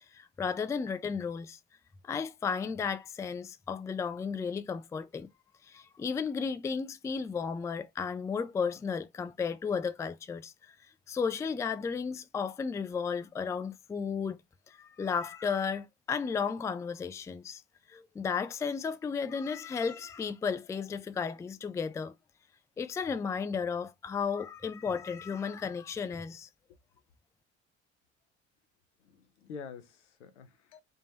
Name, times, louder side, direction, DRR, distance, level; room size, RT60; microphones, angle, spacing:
voice 1, 0.0-1.6 2.0-5.3 5.7-10.7 11.1-14.4 14.7-17.6 17.9-22.1 22.8-26.5, left 6 dB, 10° left, 0.3 m, -34 dB
voice 2, 29.0-30.8, left 6 dB, 80° left, 0.7 m, -47 dB
3.6 x 2.9 x 2.8 m
figure-of-eight pair, 55°, 35 cm